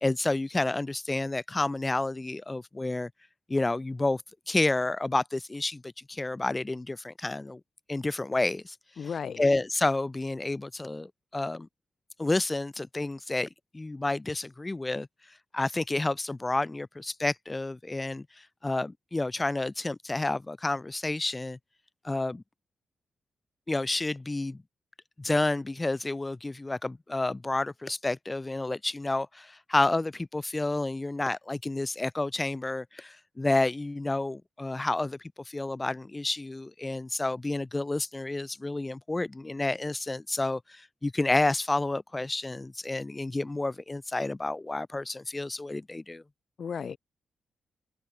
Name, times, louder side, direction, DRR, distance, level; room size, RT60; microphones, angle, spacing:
voice 1, 0.0-3.1 3.5-4.2 4.5-7.6 7.9-8.8 9.4-11.7 12.2-13.5 13.7-15.1 15.5-18.3 18.6-21.6 22.0-22.4 23.7-24.6 25.2-35.2 35.5-46.2, left 2 dB, 20° left, 0.3 m, -30 dB
voice 2, 9.0-9.5 46.6-47.0, left 6 dB, 55° left, 0.6 m, -34 dB
open air
cardioid pair, 85°, 0 cm